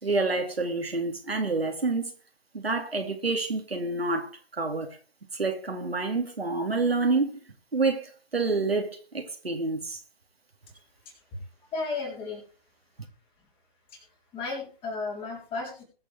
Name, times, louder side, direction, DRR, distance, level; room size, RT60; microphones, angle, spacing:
voice 1, 0.0-2.1 2.5-5.0 5.3-7.4 7.7-10.0, right 3 dB, 75° right, 2.4 m, -28 dB
voice 2, 11.3-12.4 13.9-14.0 14.3-15.8, left 3 dB, 15° left, 3.8 m, -34 dB
21.5 x 7.2 x 3.4 m
figure-of-eight pair, 130°, 31 cm